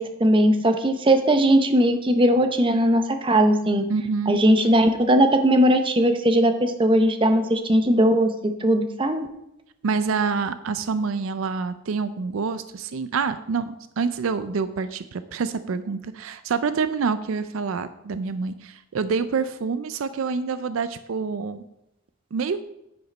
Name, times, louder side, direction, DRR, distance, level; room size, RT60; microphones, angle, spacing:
voice 1, 0.0-3.8 4.3-8.3 8.6-9.3, right 1 dB, 25° right, 6 dB, 0.7 m, -19 dB
voice 2, 3.9-4.4 9.8-21.6 22.3-22.6, right 5 dB, 70° right, 12 dB, 0.4 m, -27 dB
9.2 x 5.0 x 5.3 m, 0.84 s
head